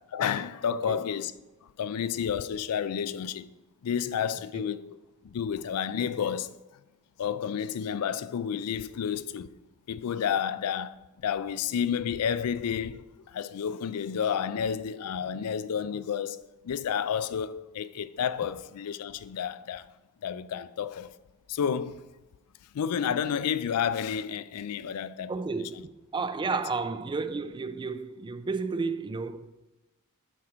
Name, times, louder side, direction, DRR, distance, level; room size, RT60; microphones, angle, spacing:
voice 1, 0.1-1.3 1.8-3.5 3.8-5.0 5.2-6.5 7.2-9.5 9.9-11.0 11.2-19.9 20.2-21.1 21.5-22.1 22.7-25.3 26.5-26.6, left 8 dB, 85° left, 0.4 m, -30 dB
voice 2, 0.7-1.0 4.5-4.7 25.3-29.7, right 4 dB, 20° right, 0.3 m, -32 dB
7.4 x 4.5 x 5.0 m
head